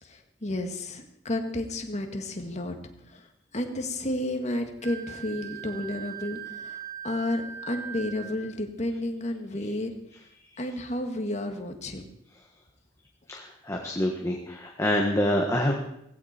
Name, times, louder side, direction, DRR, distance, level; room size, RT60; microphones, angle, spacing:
voice 1, 0.0-2.8 3.0-9.9 10.6-12.1, left 1 dB, 40° left, 4 dB, 2.0 m, -32 dB
Wind instrument woodwind instrument, 4.8-8.5, right 8 dB, 70° right, 3.1 m, -40 dB
voice 2, 13.3-15.7, left 1 dB, 15° left, 1 dB, 1.6 m, -26 dB
17.5 x 16.0 x 4.5 m, 0.77 s
head